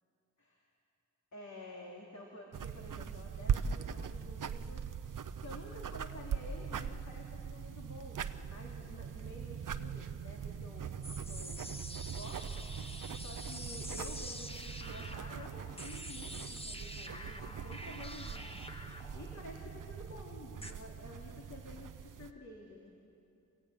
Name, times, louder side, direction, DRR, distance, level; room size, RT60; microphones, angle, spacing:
voice 1, 1.3-4.9 5.1-11.7 12.1-18.6 19.1-22.9, left 1 dB, 60° left, -2 dB, 3.0 m, -51 dB
sound 1, 2.5-22.3, right 7 dB, 80° right, 0.7 m, -41 dB
sound 2, 11.0-20.7, left 1 dB, 20° left, 1.4 m, -47 dB
28.0 x 16.5 x 8.8 m, 2.7 s
wide cardioid pair, 80°, 31 cm